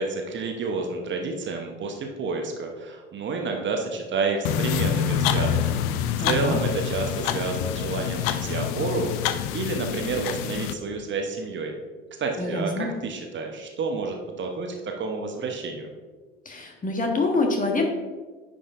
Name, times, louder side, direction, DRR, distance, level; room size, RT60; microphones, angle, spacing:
voice 1, 0.0-5.8 6.3-9.3 9.5-11.7 12.2-15.9, right 4 dB, 40° right, 3 dB, 1.0 m, -29 dB
sound 1, 4.4-10.7, left 9 dB, 60° left, 0.5 m, -26 dB
voice 2, 6.2-6.6 12.4-12.9 16.4-17.9, left 3 dB, 25° left, 2 dB, 1.3 m, -26 dB
9.7 x 5.2 x 2.6 m, 1.4 s
figure-of-eight pair, 55°, 30 cm